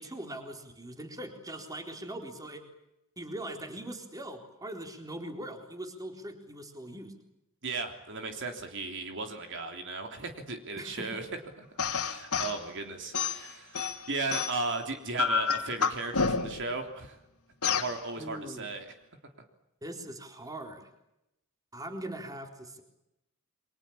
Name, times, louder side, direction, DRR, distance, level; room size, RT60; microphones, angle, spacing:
voice 1, 0.0-2.6 3.2-7.1 10.8-11.1 18.2-18.7 19.8-20.9 21.7-22.8, right 1 dB, 15° right, 4 dB, 4.0 m, -41 dB
voice 2, 7.6-11.3 11.5-11.6 11.9-17.2 17.7-18.9, right 3 dB, 55° right, 5 dB, 3.4 m, -36 dB
sound 1, 11.8-12.6 13.1-14.7 15.2-16.7 17.6-17.9, left 5 dB, 90° left, 2.9 m, -29 dB
29.5 x 24.5 x 7.2 m, 0.88 s
head